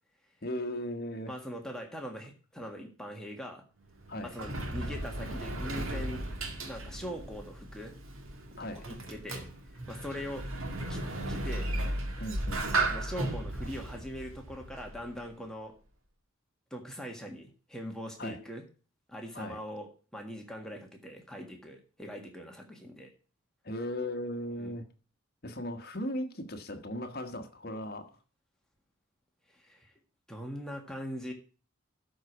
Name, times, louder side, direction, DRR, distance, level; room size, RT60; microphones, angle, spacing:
voice 1, 0.4-1.3 4.1-4.3 8.6-8.9 12.2-12.7 18.2-18.4 19.3-19.6 23.6-24.9 25.4-28.2, left 1 dB, 45° left, 1.3 m, -37 dB
voice 2, 1.3-3.6 4.2-6.2 6.7-8.0 8.7-10.5 10.9-11.7 12.9-15.7 16.7-18.6 19.1-23.1 24.6-24.7 29.5-29.9 30.3-31.3, equal, 5° left, 1.6 m, -42 dB
Sliding door, 3.8-15.3, right 2 dB, 65° right, 1.9 m, -35 dB
12.0 x 4.8 x 5.9 m
head